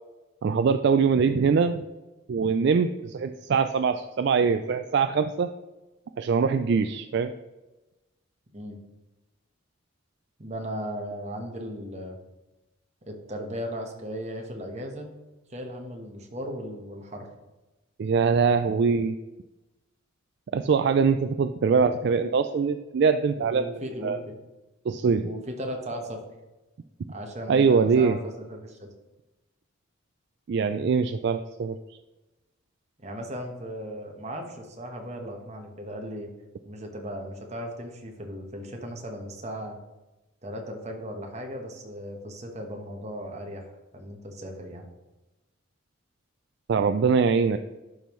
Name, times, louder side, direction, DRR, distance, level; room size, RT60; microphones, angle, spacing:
voice 1, 0.4-1.8 2.3-5.5 6.2-7.3 18.0-19.2 20.5-23.7 24.0-24.2 24.9-25.3 27.5-28.2 30.5-31.8 46.7-47.6, right 5 dB, 55° right, 9 dB, 0.3 m, -23 dB
voice 2, 10.4-12.2 13.0-15.1 15.5-17.3 21.7-21.8 23.4-24.4 25.2-26.2 27.1-28.9 33.0-36.3 36.6-39.8 40.4-44.9, equal, 35° right, 2 dB, 1.2 m, -37 dB
11.5 x 5.3 x 3.1 m, 1.1 s
head